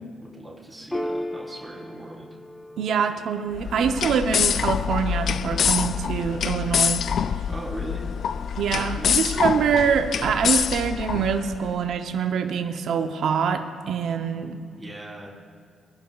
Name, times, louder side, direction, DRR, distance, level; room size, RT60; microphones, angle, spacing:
voice 1, 0.0-2.3 7.5-8.1 8.7-9.2 14.8-15.3, right 1 dB, 20° right, -4 dB, 3.6 m, -39 dB
Piano, 0.9-7.8, left 1 dB, 10° left, 1.0 m, -38 dB
voice 2, 2.8-7.0 8.6-14.6, right 7 dB, 70° right, 6 dB, 0.7 m, -25 dB
sound 1, 3.5-11.7, left 7 dB, 60° left, 0.3 m, -25 dB
23.5 x 10.5 x 2.4 m, 2.2 s
cardioid pair, 90°, 0 cm